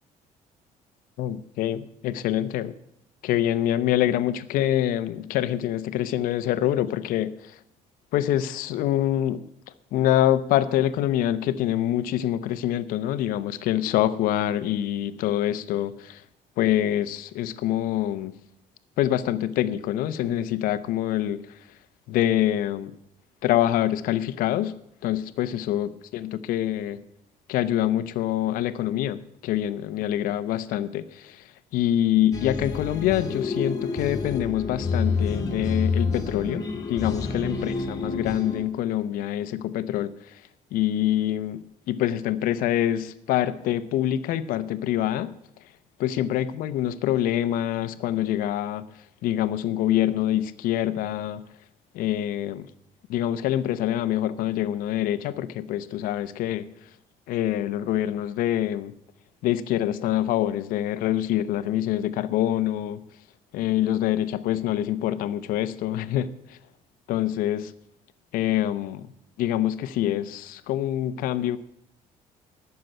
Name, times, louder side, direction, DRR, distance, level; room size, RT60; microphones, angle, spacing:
voice 1, 1.2-2.7 3.2-7.5 8.1-9.4 9.9-16.2 16.6-18.3 19.0-21.4 22.1-22.9 23.4-24.7 25.0-27.0 27.5-31.4 31.7-40.1 40.7-45.3 46.0-48.8 49.2-51.4 51.9-52.7 53.1-56.7 57.3-58.9 59.4-63.0 63.5-66.6 67.1-67.7 68.3-69.1 69.4-71.6, left 12 dB, 85° left, 13 dB, 0.8 m, -25 dB
sound 1, 32.3-38.6, left 4 dB, 25° left, 2.0 m, -28 dB
12.0 x 6.8 x 9.1 m, 0.80 s
cardioid pair, 140°, 14 cm